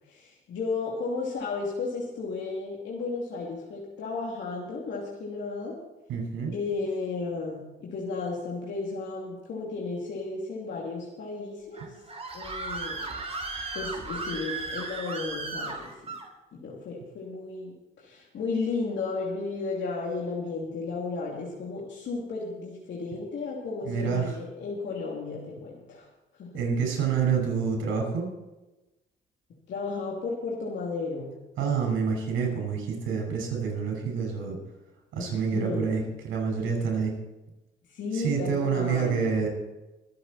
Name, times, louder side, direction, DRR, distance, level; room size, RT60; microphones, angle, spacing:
voice 1, 0.1-5.8 6.5-11.8 12.3-13.0 13.4-15.9 16.5-26.1 26.4-26.5 29.7-31.4 35.2-35.9 37.9-39.3, left 4 dB, 65° left, -3 dB, 2.8 m, -34 dB
voice 2, 6.1-6.5 11.8-11.9 23.8-24.4 26.5-28.3 31.6-34.6 35.1-37.1 38.1-39.5, right 6 dB, 90° right, 2 dB, 5.5 m, -27 dB
Screaming, 11.7-16.3, right 3 dB, 30° right, 3.0 m, -35 dB
23.5 x 8.6 x 4.3 m, 1.0 s
cardioid pair, 90°, 20 cm